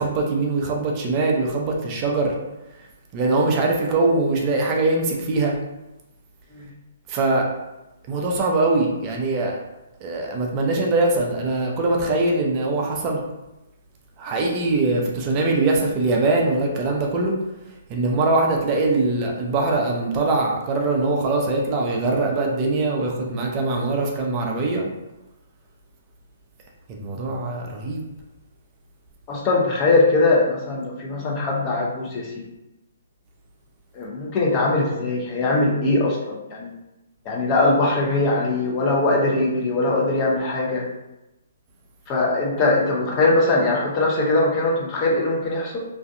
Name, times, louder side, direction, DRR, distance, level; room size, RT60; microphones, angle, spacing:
voice 1, 0.0-2.3 3.1-5.5 7.1-7.5 8.1-9.6 10.0-13.2 14.2-17.3 17.9-24.9 26.9-28.0, right 2 dB, 30° right, 0 dB, 0.4 m, -22 dB
voice 2, 29.3-32.3 33.9-36.7 37.3-40.8 42.1-45.8, left 2 dB, 30° left, -3 dB, 0.6 m, -21 dB
2.5 x 2.3 x 2.5 m, 0.96 s
figure-of-eight pair, 130°, 0 cm